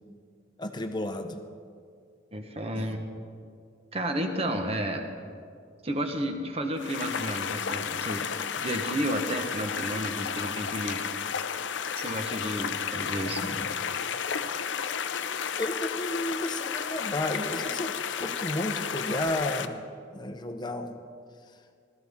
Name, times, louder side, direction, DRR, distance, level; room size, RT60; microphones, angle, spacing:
voice 1, 0.6-1.4 2.8-2.9 12.6-12.7 15.6-19.8 20.1-21.0, left 1 dB, 25° left, 7 dB, 0.8 m, -32 dB
voice 2, 2.3-3.1 3.9-5.1 5.8-8.3 8.6-11.1 11.9-13.7, right 1 dB, 35° right, 5 dB, 1.2 m, -32 dB
sound 1, 6.8-19.7, left 7 dB, 75° left, 0.6 m, -32 dB
20.0 x 13.5 x 3.6 m, 2.2 s
head